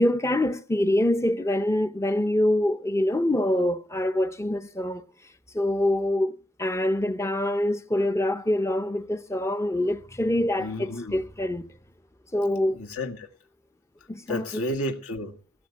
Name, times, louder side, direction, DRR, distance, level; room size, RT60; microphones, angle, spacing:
voice 1, 0.0-5.0 5.5-11.7 12.3-12.8 14.1-14.6, left 1 dB, 15° left, 0.6 m, -25 dB
voice 2, 10.6-11.2 12.7-13.3 14.3-15.3, left 1 dB, 70° left, 1.8 m, -31 dB
17.5 x 6.8 x 8.5 m
head